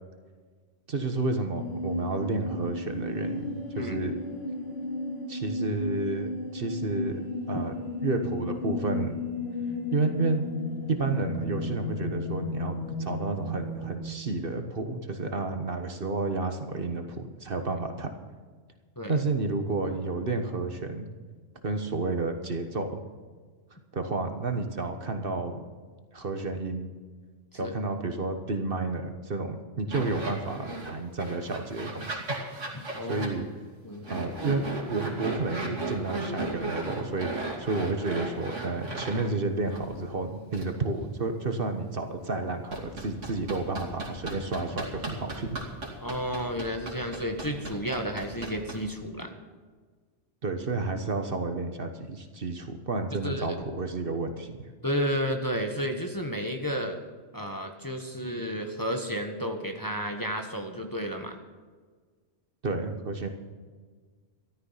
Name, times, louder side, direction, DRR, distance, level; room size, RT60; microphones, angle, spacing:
voice 1, 0.9-4.1 5.3-7.2 7.5-7.7 8.0-9.2 9.9-10.5 10.9-18.1 19.1-21.1 21.6-23.0 23.9-25.6 26.1-26.9 27.5-32.2 33.0-33.4 34.1-45.6 50.4-54.6 62.6-63.3, right 3 dB, 50° right, 6 dB, 1.4 m, -31 dB
sound 1, 1.5-14.0, left 2 dB, 60° left, 2.1 m, -34 dB
sound 2, 29.9-30.9 31.2-33.3 34.0-39.3 39.7-39.8 40.5-40.7 42.7-49.0, right 2 dB, 90° right, 3.1 m, -35 dB
voice 2, 32.7-33.3 33.8-34.1 46.0-49.3 53.2-53.6 54.8-57.0 57.3-61.4, equal, 20° left, 3 dB, 1.2 m, -32 dB
14.0 x 12.5 x 5.7 m, 1.5 s
omnidirectional pair, 1.2 m